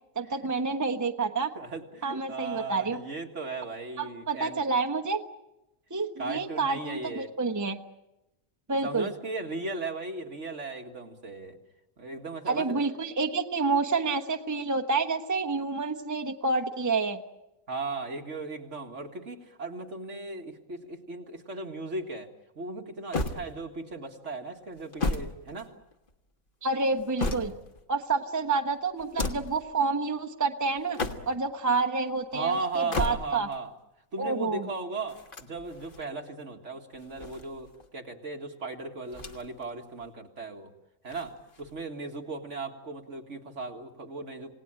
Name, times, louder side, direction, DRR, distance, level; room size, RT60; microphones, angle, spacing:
voice 1, 0.1-1.5 2.0-3.0 4.0-5.2 5.9-7.8 8.7-9.1 12.5-17.2 26.6-27.5 27.9-31.0 31.3-33.5 34.2-34.7, right 4 dB, 15° right, 6 dB, 1.0 m, -28 dB
voice 2, 1.6-4.6 6.2-7.3 8.8-11.6 12.0-12.8 17.7-22.3 22.6-25.7 32.3-33.7 34.1-40.7 41.0-44.5, right 3 dB, 60° right, 3 dB, 2.2 m, -37 dB
sound 1, 23.1-23.9 24.7-26.1 26.8-27.8 29.0-29.6 30.8-31.5 32.7-33.6 35.1-36.0 36.9-37.9 39.1-39.7 40.0-40.1 41.1-41.8, left 2 dB, 40° left, 1.5 m, -34 dB
28.5 x 18.0 x 8.9 m, 0.93 s
omnidirectional pair, 1.4 m